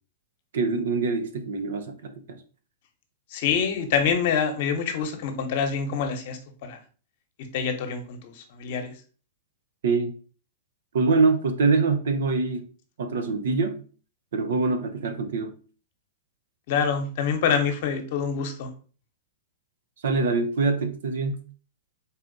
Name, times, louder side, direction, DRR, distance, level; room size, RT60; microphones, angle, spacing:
voice 1, 0.5-2.4 9.8-10.1 10.9-12.7 13.0-13.8 14.3-15.5 20.0-21.4, right 4 dB, 75° right, 0.7 m, -24 dB
voice 2, 3.3-6.8 7.5-8.3 8.6-8.9 16.7-18.7, left 6 dB, 60° left, 0.9 m, -26 dB
4.1 x 2.5 x 3.9 m
hypercardioid pair, 120°, 0 cm